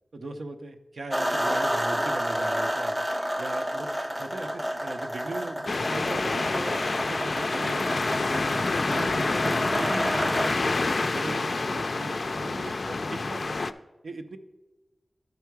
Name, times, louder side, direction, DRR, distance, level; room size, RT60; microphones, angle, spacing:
voice 1, 0.1-3.0 3.4-3.9 4.2-8.5 8.8-13.6 14.0-14.4, right 2 dB, 85° right, 6 dB, 0.6 m, -39 dB
sound 1, 1.1-10.5, equal, 15° right, 0.4 m, -30 dB
sound 2, 5.7-13.7, left 3 dB, 70° left, 0.3 m, -27 dB
11.0 x 4.6 x 4.6 m, 1.1 s
cardioid pair, 45°, 0 cm